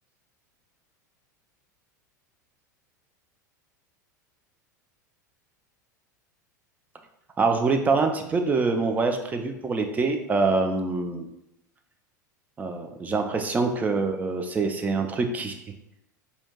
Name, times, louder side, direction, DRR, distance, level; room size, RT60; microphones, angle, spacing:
voice 1, 7.4-11.3 12.6-15.6, right 3 dB, 15° right, 5 dB, 0.4 m, -25 dB
4.2 x 2.7 x 2.3 m, 0.82 s
figure-of-eight pair, 85°, 10 cm